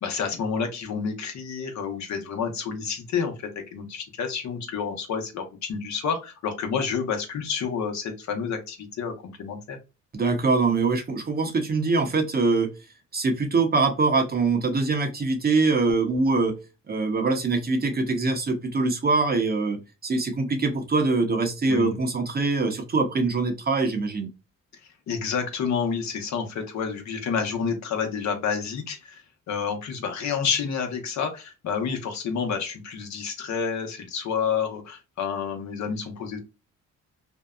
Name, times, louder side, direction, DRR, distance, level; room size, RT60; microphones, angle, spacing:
voice 1, 0.0-9.8 21.7-22.0 25.1-36.4, left 6 dB, 65° left, 5 dB, 0.9 m, -29 dB
voice 2, 10.1-12.7 13.1-16.5 16.9-24.3, right 3 dB, 30° right, 4 dB, 0.7 m, -23 dB
2.6 x 2.2 x 2.3 m, 0.27 s
cardioid pair, 90°, 30 cm